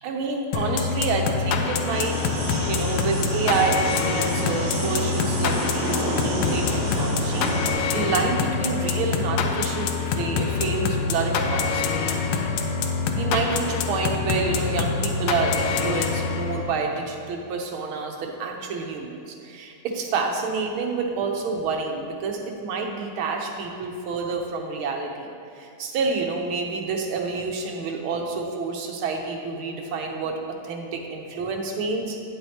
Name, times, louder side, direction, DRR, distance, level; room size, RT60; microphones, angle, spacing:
voice 1, 0.0-11.8 13.1-25.3 25.5-30.4 30.6-32.2, right 4 dB, 75° right, 2 dB, 1.6 m, -28 dB
sound 1, 0.5-16.8, left 5 dB, 75° left, 1.1 m, -25 dB
sound 2, 1.9-7.7, right 1 dB, 45° right, 1.3 m, -30 dB
9.0 x 7.8 x 2.8 m, 2.6 s
omnidirectional pair, 2.4 m